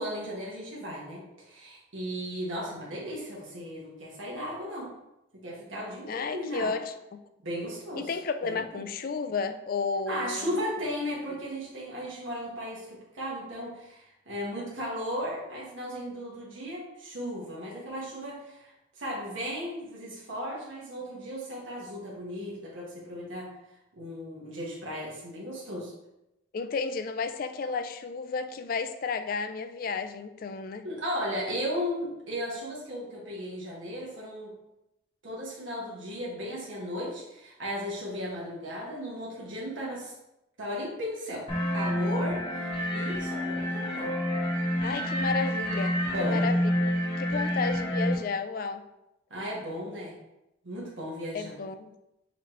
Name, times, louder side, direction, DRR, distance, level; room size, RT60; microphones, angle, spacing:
voice 1, 0.0-4.9 5.4-6.7 7.4-8.1 8.4-8.9 10.1-23.5 23.9-25.9 30.8-34.5 35.2-40.1 40.6-41.5 41.7-44.3 46.1-46.5 49.3-50.2 50.6-51.6, equal, 75° right, -5 dB, 1.3 m, -36 dB
voice 2, 6.1-6.9 8.0-10.5 10.8-10.9 11.3-11.4 26.5-30.9 44.8-46.7 47.2-48.8 51.3-51.9, left 4 dB, 45° left, 9 dB, 0.3 m, -32 dB
sound 1, 41.5-48.1, equal, 25° left, 0.9 m, -28 dB
5.8 x 3.0 x 3.0 m, 0.90 s
head